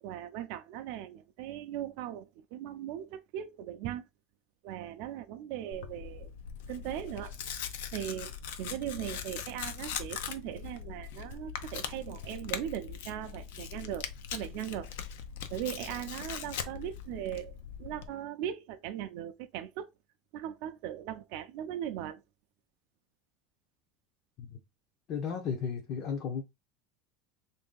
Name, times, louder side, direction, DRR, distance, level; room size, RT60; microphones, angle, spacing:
voice 1, 0.0-4.0 4.6-6.3 6.7-7.3 7.9-8.3 8.6-14.9 15.5-19.9 20.3-22.2, right 11 dB, 55° right, 0.4 m, -39 dB
Tearing, 5.7-18.1, left 8 dB, 80° left, 0.5 m, -41 dB
voice 2, 25.1-26.4, left 6 dB, 35° left, 0.6 m, -34 dB
3.2 x 2.6 x 3.7 m
cardioid pair, 175°, 0 cm